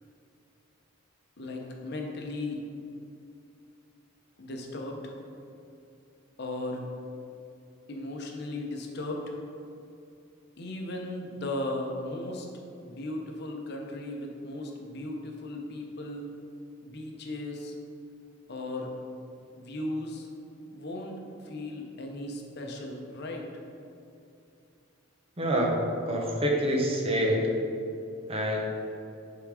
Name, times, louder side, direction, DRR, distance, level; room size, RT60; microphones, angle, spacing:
voice 1, 1.4-2.7 4.4-5.2 6.4-6.9 7.9-9.4 10.6-12.5 12.8-16.3 16.8-17.7 18.5-18.9 19.6-20.3 20.7-21.2 21.4-23.5, left 1 dB, 55° left, 2 dB, 0.8 m, -36 dB
voice 2, 25.4-25.7 26.1-27.5 28.3-28.6, equal, 30° right, -1 dB, 0.8 m, -26 dB
7.0 x 3.8 x 4.8 m, 2.6 s
head